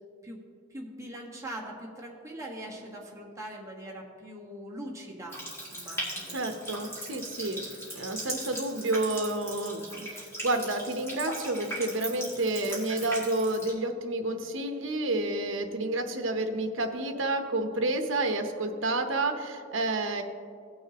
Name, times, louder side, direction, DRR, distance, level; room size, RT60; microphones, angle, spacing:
voice 1, 0.7-5.4 5.7-6.4, right 1 dB, 15° right, -3 dB, 1.4 m, -41 dB
Water tap faucet, 5.3-13.7, equal, 15° left, 2.3 m, -39 dB
voice 2, 6.3-20.2, right 2 dB, 70° right, 6 dB, 0.8 m, -30 dB
17.0 x 6.4 x 2.9 m, 2.4 s
head